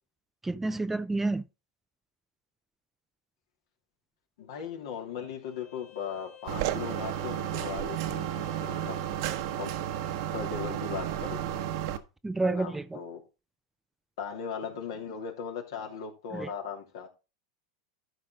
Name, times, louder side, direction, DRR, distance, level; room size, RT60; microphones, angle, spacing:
voice 1, 0.4-1.4 12.2-13.0 16.3-16.5, right 2 dB, 10° right, 0.4 m, -29 dB
voice 2, 4.4-9.0 9.6-9.7 10.3-11.6 12.4-13.2 14.2-17.1, left 7 dB, 70° left, 2.8 m, -38 dB
Bowed string instrument, 5.4-10.2, left 13 dB, 55° left, 3.6 m, -53 dB
sound 1, 6.5-12.0, right 11 dB, 65° right, 1.1 m, -32 dB
12.5 x 5.1 x 3.7 m
hypercardioid pair, 105°, 2 cm